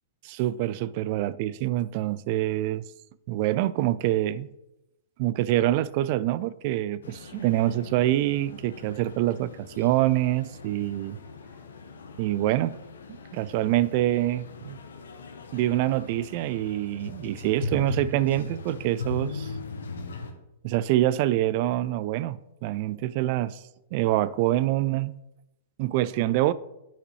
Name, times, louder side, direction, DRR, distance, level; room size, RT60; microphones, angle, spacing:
voice 1, 0.2-2.8 3.3-4.5 5.2-11.2 12.2-12.8 13.1-14.8 15.5-19.5 20.6-23.6 23.9-25.1 25.8-26.5, right 14 dB, 50° right, 0.3 m, -25 dB
sound 1, 7.0-20.3, left 4 dB, 75° left, 0.8 m, -39 dB
8.7 x 5.0 x 3.2 m
hypercardioid pair, 110°, 0 cm